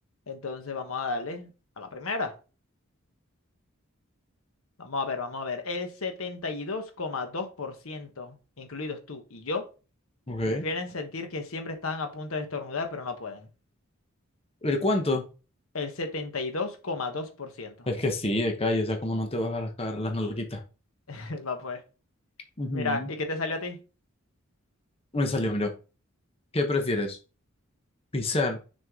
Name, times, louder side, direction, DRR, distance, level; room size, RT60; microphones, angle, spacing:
voice 1, 0.3-1.5 1.8-2.3 4.8-9.6 10.5-13.5 15.7-17.9 21.1-21.8 22.7-23.8, left 3 dB, 80° left, 6 dB, 1.2 m, -33 dB
voice 2, 10.3-10.6 14.6-15.2 17.9-20.6 22.6-23.1 25.1-25.7 26.5-27.2 28.1-28.6, left 2 dB, 30° left, 4 dB, 1.0 m, -27 dB
6.3 x 4.5 x 3.7 m, 0.32 s
head